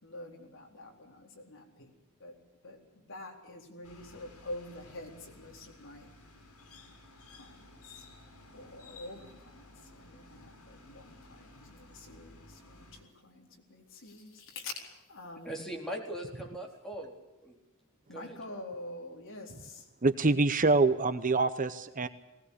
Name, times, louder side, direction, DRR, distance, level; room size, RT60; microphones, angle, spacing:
voice 1, 0.0-1.9 2.2-2.3 2.6-6.1 7.4-8.1 8.5-15.6 18.1-19.9, left 2 dB, 60° left, 2 dB, 4.1 m, -46 dB
sound 1, 3.8-13.0, left 2 dB, 85° left, 6.6 m, -55 dB
voice 2, 15.4-17.6 18.1-18.6, right 1 dB, ahead, 0 dB, 4.0 m, -41 dB
voice 3, 20.0-22.1, right 3 dB, 35° right, 11 dB, 0.9 m, -25 dB
20.0 x 19.0 x 8.4 m, 0.97 s
head